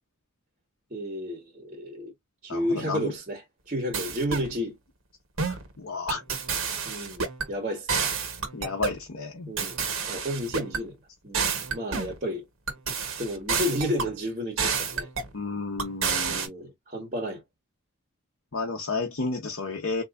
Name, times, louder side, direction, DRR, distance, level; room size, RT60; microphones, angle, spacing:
voice 1, 0.9-2.1 2.4-4.8 6.9-8.1 9.5-9.8 10.1-11.0 11.2-12.5 13.2-15.1 16.3-17.4, equal, 35° right, 1.2 m, -32 dB
voice 2, 2.5-3.1 5.5-6.2 8.5-9.5 15.3-16.4 18.5-20.0, left 3 dB, 70° left, 0.8 m, -32 dB
sound 1, 3.9-4.5 5.4-5.7 6.1-7.5 7.9-9.0 9.6-10.8 11.3-12.2 12.7-14.1 14.6-15.3 15.8-16.5, right 5 dB, 75° right, 1.2 m, -29 dB
3.8 x 2.7 x 2.4 m
head